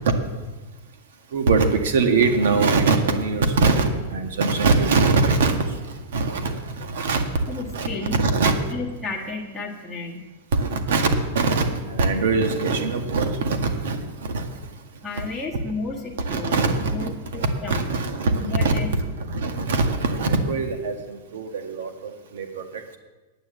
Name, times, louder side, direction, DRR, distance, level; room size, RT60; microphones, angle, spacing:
voice 1, 1.3-8.5 10.5-11.1 11.4-14.6 16.2-23.0, right 3 dB, 70° right, 5 dB, 1.9 m, -23 dB
voice 2, 7.5-8.2 8.4-10.3 15.0-17.9 18.3-18.9, left 3 dB, ahead, -2 dB, 1.4 m, -33 dB
9.8 x 9.2 x 7.9 m, 1.2 s
supercardioid pair, 175°, 0 cm